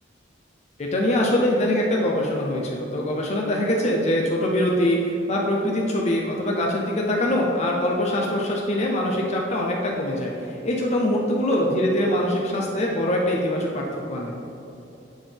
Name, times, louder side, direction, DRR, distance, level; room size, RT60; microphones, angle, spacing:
voice 1, 0.8-14.3, left 1 dB, 40° left, -2 dB, 0.6 m, -23 dB
9.1 x 3.6 x 3.5 m, 2.9 s
head